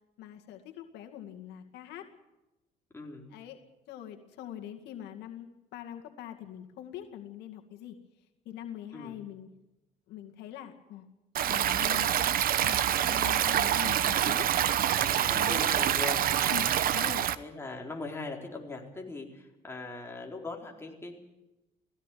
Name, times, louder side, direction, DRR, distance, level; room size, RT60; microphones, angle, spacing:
voice 1, 0.2-2.1 3.3-3.6 3.9-8.0 8.5-9.5 10.1-11.1 11.4-14.5 15.3-15.7 16.5-17.3, left 11 dB, 85° left, 4 dB, 2.2 m, -43 dB
voice 2, 2.9-3.3 8.9-9.2 14.9-16.6 17.3-21.2, left 3 dB, 15° left, 0 dB, 4.4 m, -40 dB
Stream, 11.3-17.3, right 11 dB, 60° right, 1.0 m, -26 dB
17.5 x 16.5 x 9.3 m, 0.96 s
cardioid pair, 110°, 17 cm